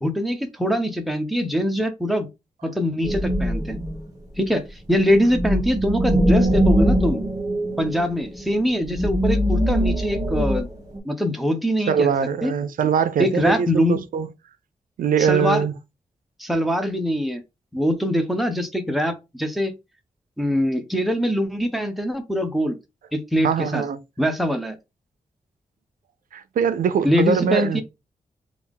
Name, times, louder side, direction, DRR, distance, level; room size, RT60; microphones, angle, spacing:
voice 1, 0.0-2.3 2.6-3.8 4.4-7.2 7.8-10.7 11.0-12.1 12.4-12.5 13.2-14.0 15.2-15.6 16.4-17.4 17.7-19.7 20.4-22.7 23.1-23.8 24.2-24.8 27.0-27.8, equal, ahead, 0.6 m, -23 dB
sound 1, 3.0-4.0 5.1-11.0, equal, 25° right, 1.5 m, -22 dB
voice 2, 11.9-14.3 15.0-15.7 23.4-24.0 26.3-27.8, right 7 dB, 85° right, 0.4 m, -22 dB
3.4 x 2.4 x 3.4 m
wide cardioid pair, 110°, 14 cm